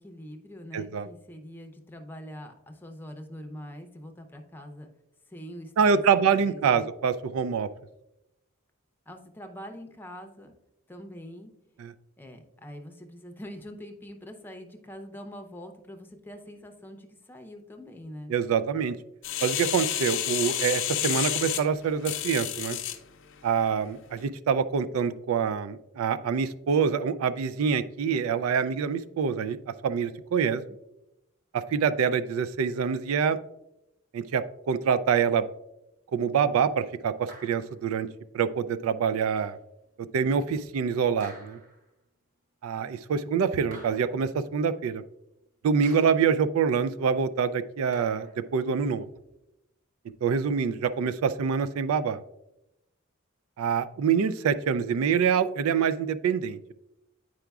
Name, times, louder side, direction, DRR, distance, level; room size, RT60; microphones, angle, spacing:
voice 1, 0.0-4.9 5.3-6.9 9.1-10.5 10.9-11.5 12.2-18.3, equal, 10° left, 5 dB, 0.6 m, -44 dB
voice 2, 0.7-1.1 5.8-7.7 11.8-11.9 18.3-19.0 19.4-22.8 23.4-29.6 29.8-30.6 31.5-33.4 34.1-35.4 36.1-38.1 38.3-39.6 40.1-41.6 42.6-45.0 45.6-49.1 50.2-52.2 53.6-56.7, right 6 dB, 80° right, 14 dB, 0.3 m, -26 dB
sound 1, 19.2-23.0 23.5-23.6, left 12 dB, 60° left, 0.5 m, -30 dB
sound 2, 37.3-37.9 39.4-39.5 41.2-41.9 43.7-44.4 45.8-46.4 47.9-48.5, right 1 dB, 40° right, 1.0 m, -50 dB
8.9 x 4.8 x 2.3 m, 0.88 s
head